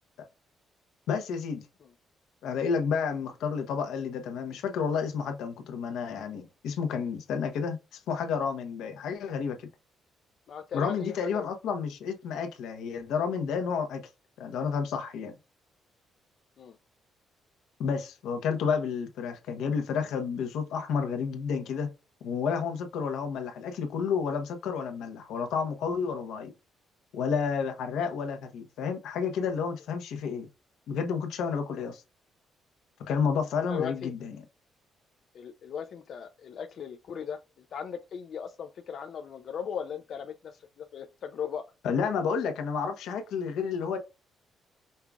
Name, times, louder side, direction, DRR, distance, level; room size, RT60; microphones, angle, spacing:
voice 1, 1.1-1.6 2.4-9.7 10.7-14.0 14.4-15.3 17.8-21.9 22.2-26.5 27.1-30.5 30.9-32.0 33.0-34.4 41.8-44.0, left 6 dB, 85° left, 0.9 m, -30 dB
voice 2, 10.5-11.5 16.6-16.7 33.7-34.1 35.3-37.4 37.7-41.6, left 7 dB, 45° left, 0.4 m, -38 dB
5.5 x 2.3 x 3.5 m
cardioid pair, 175°, 0 cm